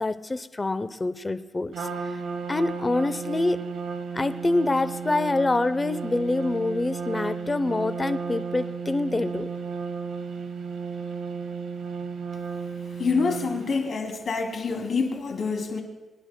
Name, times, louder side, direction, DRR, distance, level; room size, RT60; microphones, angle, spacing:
voice 1, 0.0-1.9 2.5-3.6 4.1-9.5, left 2 dB, 25° left, 13 dB, 0.6 m, -26 dB
Trumpet, 1.7-13.9, right 5 dB, 75° right, 1.2 m, -34 dB
voice 2, 13.0-15.8, left 4 dB, 60° left, 2 dB, 2.7 m, -26 dB
25.0 x 11.0 x 2.2 m, 1.2 s
cardioid pair, 75°, 0 cm